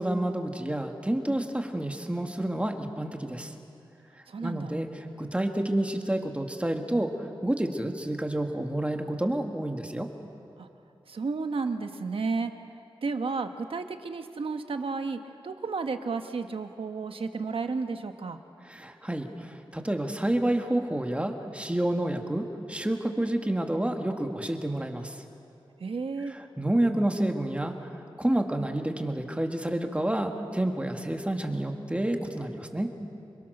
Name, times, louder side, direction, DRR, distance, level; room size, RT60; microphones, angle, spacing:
voice 1, 0.0-3.5 4.4-7.1 7.4-10.1 18.6-25.2 26.3-32.9, right 1 dB, 15° right, 4 dB, 1.9 m, -29 dB
voice 2, 4.3-4.8 10.6-10.7 11.1-12.5 13.0-15.2 15.4-18.4 25.8-26.3, right 4 dB, 80° right, 7 dB, 1.2 m, -32 dB
27.0 x 22.5 x 6.7 m, 2.7 s
wide cardioid pair, 80°, 9 cm